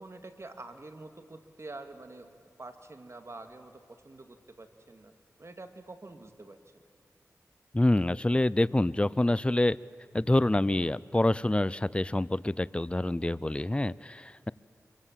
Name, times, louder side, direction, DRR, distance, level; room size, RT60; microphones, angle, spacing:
voice 1, 0.0-2.3 2.6-5.1 5.4-6.6, right 2 dB, 50° right, 7 dB, 2.1 m, -46 dB
voice 2, 7.7-9.8 10.1-14.5, left 1 dB, 20° left, 20 dB, 0.6 m, -26 dB
25.5 x 22.5 x 7.5 m, 2.2 s
cardioid pair, 40°, 6 cm